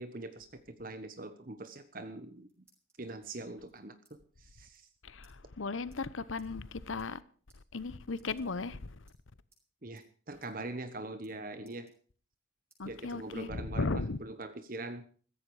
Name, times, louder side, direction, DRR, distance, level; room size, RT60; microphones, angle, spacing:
voice 1, 0.0-2.5 3.0-4.9 9.8-11.9 12.8-15.0, right 2 dB, 45° right, 1.2 m, -43 dB
sound 1, 2.5-3.1 3.7-4.2 4.4-4.5 4.7-4.9 5.2-5.4 5.9-6.0 6.4-6.5 6.9-7.2 7.5-7.6 8.1-8.8 9.1-9.7 10.0-10.1 10.4-10.5 10.8-11.3 11.6-12.4 12.7-12.8 13.3-14.2, right 2 dB, 15° right, 6.0 m, -70 dB
voice 2, 5.0-7.2 7.7-9.0 12.8-14.2, left 3 dB, 85° left, 0.9 m, -36 dB
15.0 x 15.0 x 4.9 m
head